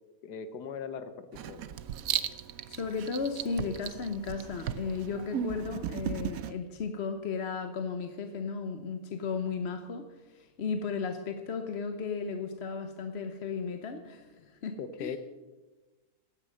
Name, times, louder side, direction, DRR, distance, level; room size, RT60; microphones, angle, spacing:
voice 1, 0.2-1.6 14.8-15.2, left 6 dB, 90° left, 11 dB, 1.6 m, -39 dB
Writing, 1.3-6.5, right 9 dB, 70° right, 1.0 m, -36 dB
voice 2, 2.7-15.2, left 5 dB, 50° left, 6 dB, 1.0 m, -35 dB
16.5 x 9.7 x 6.4 m, 1.2 s
omnidirectional pair, 1.7 m